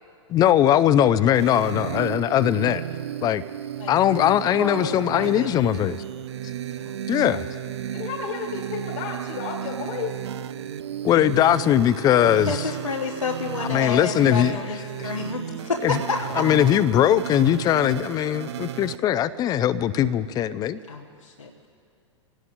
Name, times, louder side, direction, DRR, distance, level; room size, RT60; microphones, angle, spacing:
voice 1, 0.3-2.8 3.2-3.4 3.9-6.0 7.1-7.4 11.0-12.6 13.6-14.6 15.0-15.1 15.8-16.0 16.4-20.8, left 11 dB, 25° left, 15 dB, 0.6 m, -20 dB
sound 1, 1.3-19.0, right 10 dB, 60° right, 0.5 m, -34 dB
voice 2, 4.4-5.5 6.7-7.0 12.5-16.4 20.9-21.5, left 3 dB, 85° left, -3 dB, 1.3 m, -30 dB
voice 3, 7.9-10.1, left 5 dB, 40° left, 3 dB, 1.6 m, -32 dB
29.5 x 17.5 x 2.7 m, 2.3 s
figure-of-eight pair, 100°, 16 cm